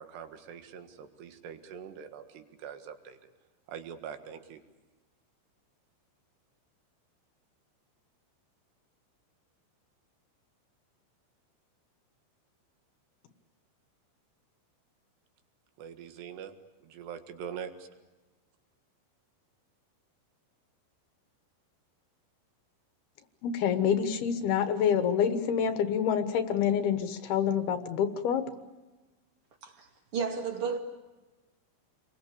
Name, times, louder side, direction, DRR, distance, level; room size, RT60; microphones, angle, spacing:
voice 1, 0.0-3.2 3.7-4.6 15.8-16.5 16.8-17.9, right 8 dB, 70° right, 3.7 m, -43 dB
voice 2, 23.4-28.5, left 8 dB, 65° left, 3.0 m, -27 dB
voice 3, 30.1-30.8, right 5 dB, 35° right, 2.8 m, -32 dB
29.5 x 22.5 x 8.5 m
omnidirectional pair, 5.4 m